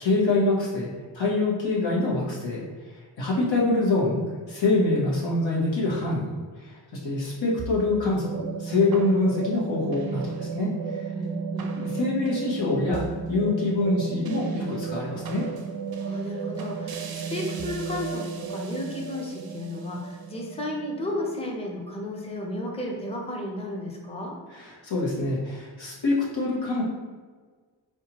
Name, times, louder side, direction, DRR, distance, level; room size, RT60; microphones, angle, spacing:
voice 1, 0.0-2.6 3.2-4.2 4.5-6.3 6.6-11.0 11.7-15.4 24.5-26.8, left 2 dB, 85° left, -6 dB, 1.1 m, -25 dB
sound 1, 7.6-22.0, right 6 dB, 55° right, 0.5 m, -34 dB
voice 2, 11.1-11.7 15.9-24.3, left 1 dB, 15° left, -1 dB, 0.6 m, -33 dB
4.4 x 2.4 x 2.9 m, 1.5 s
wide cardioid pair, 55°, 44 cm